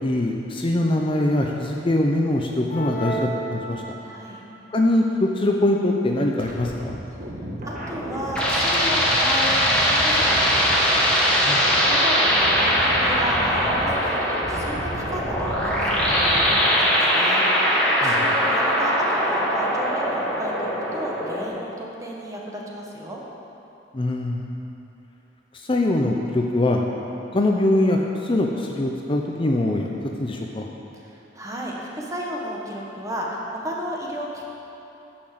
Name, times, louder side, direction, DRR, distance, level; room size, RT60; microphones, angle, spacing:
voice 1, 0.0-3.8 4.7-7.0 11.4-11.7 18.0-18.1 23.9-24.5 25.5-26.8 27.3-29.9 30.2-30.7, left 1 dB, 30° left, 1 dB, 0.6 m, -22 dB
sound 1, 2.7-4.4, right 2 dB, 50° left, 1.4 m, -31 dB
voice 2, 4.0-4.4 7.6-11.0 11.3-23.2 30.9-34.5, equal, 20° right, -3 dB, 1.5 m, -33 dB
sound 2, 6.4-16.6, right 1 dB, 50° right, 1.5 m, -35 dB
sound 3, 7.8-21.5, equal, 5° left, 1.9 m, -21 dB
10.5 x 6.0 x 7.7 m, 2.9 s
head